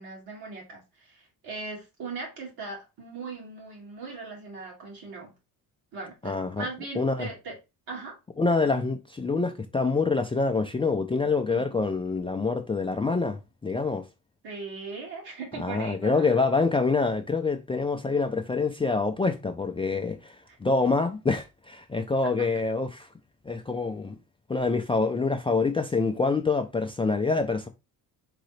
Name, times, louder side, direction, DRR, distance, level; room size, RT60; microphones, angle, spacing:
voice 1, 0.0-5.3 5.9-7.6 7.9-8.2 11.5-11.8 14.4-16.4 20.5-20.6 22.2-22.5, right 3 dB, 65° right, 2.3 m, -39 dB
voice 2, 6.2-6.7 7.0-7.3 8.4-14.0 15.6-23.1 23.5-24.2 24.5-27.7, left 3 dB, 15° left, 0.4 m, -26 dB
3.9 x 3.8 x 3.2 m
cardioid pair, 110°, 40 cm